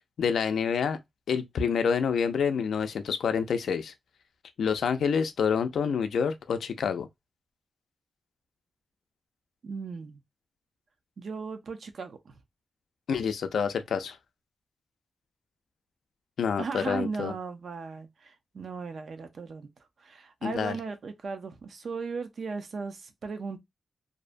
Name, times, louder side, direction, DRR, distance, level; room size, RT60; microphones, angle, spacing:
voice 1, 0.2-1.0 1.3-3.9 4.6-7.1 13.1-14.2 16.4-17.3 20.4-20.8, left 6 dB, 85° left, 0.4 m, -27 dB
voice 2, 9.6-10.2 11.2-12.4 16.6-19.7 20.0-23.6, right 4 dB, 55° right, 0.5 m, -37 dB
2.6 x 2.1 x 2.4 m
wide cardioid pair, 165°, 0 cm